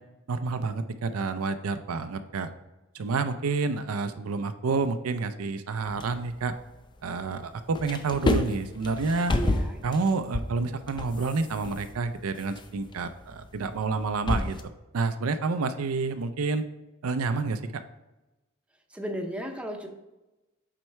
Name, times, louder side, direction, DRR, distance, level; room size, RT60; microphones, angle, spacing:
voice 1, 0.3-2.5 2.9-6.5 7.0-9.3 9.8-14.6 14.9-16.6 17.0-17.8, right 4 dB, 85° right, 9 dB, 0.5 m, -29 dB
sound 1, 5.8-7.4 7.6-14.6, left 2 dB, 20° left, 0.4 m, -31 dB
voice 2, 9.3-9.8 18.9-19.9, right 1 dB, 5° right, 2 dB, 0.7 m, -34 dB
7.5 x 4.5 x 3.2 m, 1.0 s
head